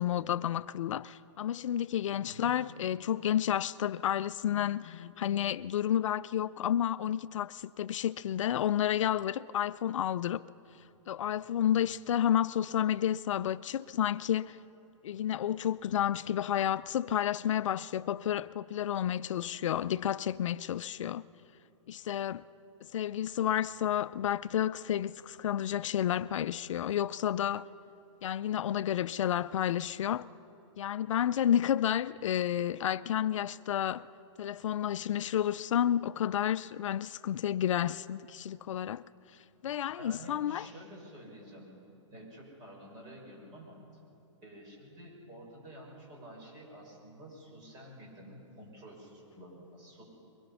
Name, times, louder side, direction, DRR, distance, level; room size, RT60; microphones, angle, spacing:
voice 1, 0.0-10.4 11.1-14.6 15.0-21.2 21.9-22.4 22.9-27.6 28.2-30.3 30.8-34.1 34.4-39.0 39.6-40.7, left 10 dB, 75° left, 0.4 m, -31 dB
voice 2, 2.2-2.6 40.0-41.7 42.1-43.8 44.4-50.0, right 1 dB, 25° right, 6.2 m, -50 dB
23.0 x 21.5 x 5.6 m
hypercardioid pair, 155°, 16 cm